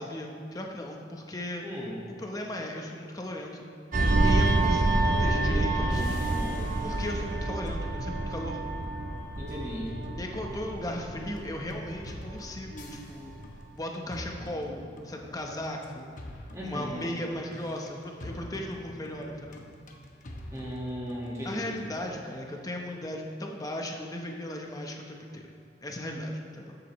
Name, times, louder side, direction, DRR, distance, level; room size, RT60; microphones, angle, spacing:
voice 1, 0.0-1.7 2.1-3.7 4.2-6.2 6.8-8.6 10.2-13.3 13.7-16.1 16.6-19.6 21.4-25.4 25.8-26.8, left 1 dB, 20° left, 1 dB, 0.9 m, -36 dB
voice 2, 1.6-1.9 5.0-6.7 9.4-9.9 16.5-17.0 20.5-21.7, equal, 15° right, -6 dB, 1.7 m, -36 dB
sound 1, 3.9-13.0 13.3-13.6, right 2 dB, 50° right, 0.7 m, -28 dB
sound 2, 5.9-22.3, left 1 dB, 45° left, 0.9 m, -46 dB
14.0 x 7.8 x 3.1 m, 2.4 s
head